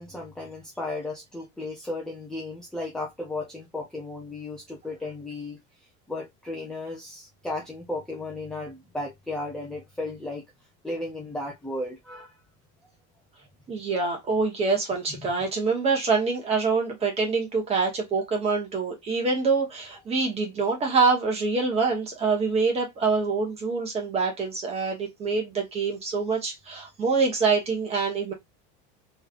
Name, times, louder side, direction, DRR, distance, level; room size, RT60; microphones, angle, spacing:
voice 1, 0.0-5.6 6.1-10.4 10.8-12.3 15.1-15.3, left 2 dB, ahead, 0.5 m, -35 dB
voice 2, 13.7-28.3, right 4 dB, 20° right, 1.1 m, -25 dB
3.2 x 3.2 x 2.4 m
cardioid pair, 175°, 30 cm